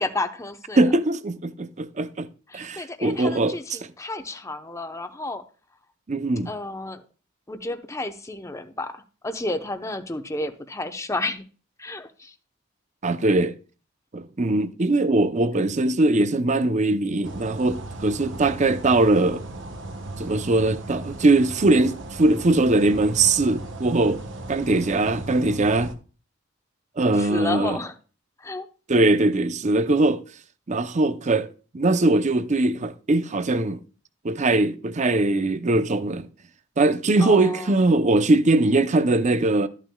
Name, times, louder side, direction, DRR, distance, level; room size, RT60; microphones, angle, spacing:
voice 1, 0.0-0.8 2.5-5.4 6.5-7.0 7.5-11.4 11.8-12.3 27.1-27.9 28.4-28.7 37.2-37.8, left 2 dB, 15° left, 0.8 m, -31 dB
voice 2, 0.8-2.3 2.5-3.8 6.1-6.5 13.0-13.5 14.1-19.4 20.2-24.2 24.5-25.9 27.0-27.8 28.9-30.2 30.7-31.5 31.7-33.8 34.2-36.3 36.8-39.7, right 2 dB, 35° right, 0.6 m, -21 dB
sound 1, 17.2-25.9, right 2 dB, 65° right, 1.2 m, -37 dB
13.0 x 9.1 x 2.3 m
head